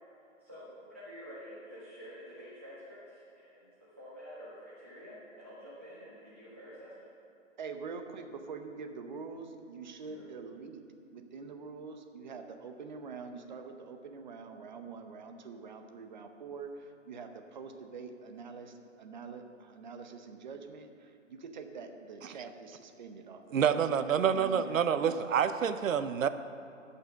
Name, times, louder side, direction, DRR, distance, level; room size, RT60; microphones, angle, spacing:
voice 1, 0.4-7.1 10.0-10.2, equal, 10° right, -9 dB, 0.4 m, -49 dB
voice 2, 7.6-10.8 11.1-23.8 24.3-25.2, right 5 dB, 35° right, 6 dB, 0.8 m, -45 dB
voice 3, 23.5-26.3, right 7 dB, 80° right, 12 dB, 0.7 m, -27 dB
13.0 x 5.6 x 6.9 m, 2.6 s
hypercardioid pair, 160°, 39 cm